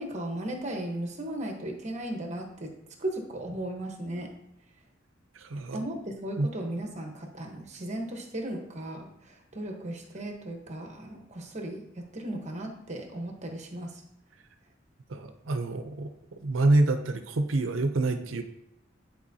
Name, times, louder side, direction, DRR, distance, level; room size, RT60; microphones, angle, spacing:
voice 1, 0.0-2.7 3.0-4.3 5.7-14.0, right 1 dB, 35° right, 2 dB, 1.1 m, -36 dB
voice 2, 5.4-5.8 6.4-6.5 15.1-16.1 16.4-18.4, right 2 dB, 85° right, 8 dB, 0.6 m, -26 dB
10.0 x 4.4 x 2.7 m, 0.80 s
head